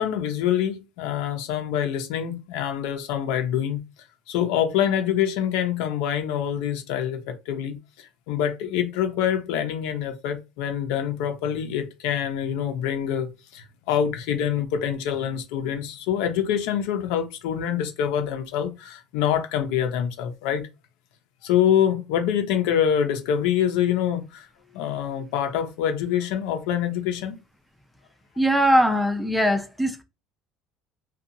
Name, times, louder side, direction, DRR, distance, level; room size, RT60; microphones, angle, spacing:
voice 1, 0.0-3.8 4.3-20.6 21.4-24.5 24.7-27.4, left 9 dB, 80° left, 0.6 m, -25 dB
voice 2, 28.4-30.0, equal, ahead, 0.4 m, -21 dB
2.7 x 2.3 x 2.6 m
cardioid pair, 175°, 0 cm